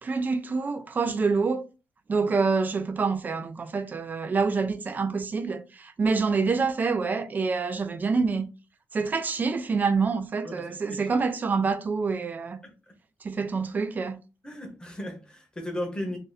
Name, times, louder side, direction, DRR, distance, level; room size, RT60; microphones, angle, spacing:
voice 1, 0.0-1.7 2.1-8.5 8.9-12.6 13.2-14.2, right 4 dB, 30° right, 0.4 m, -26 dB
voice 2, 10.4-11.1 12.6-12.7 14.4-16.2, left 1 dB, 15° left, 0.9 m, -36 dB
2.6 x 2.6 x 4.0 m
wide cardioid pair, 145°, 6 cm